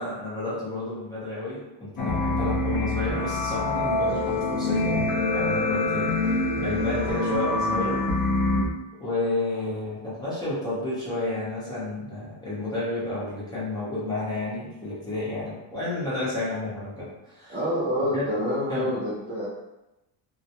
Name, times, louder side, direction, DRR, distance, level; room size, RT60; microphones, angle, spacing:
voice 1, 0.0-6.1 6.6-8.0 8.9-17.6 18.1-18.2 18.7-18.9, left 2 dB, 10° left, -10 dB, 0.8 m, -31 dB
sound 1, 2.0-8.6, left 2 dB, 45° left, 0.4 m, -25 dB
voice 2, 17.5-19.5, equal, 25° right, -6 dB, 0.3 m, -27 dB
2.2 x 2.1 x 2.8 m, 0.97 s
cardioid pair, 150°, 47 cm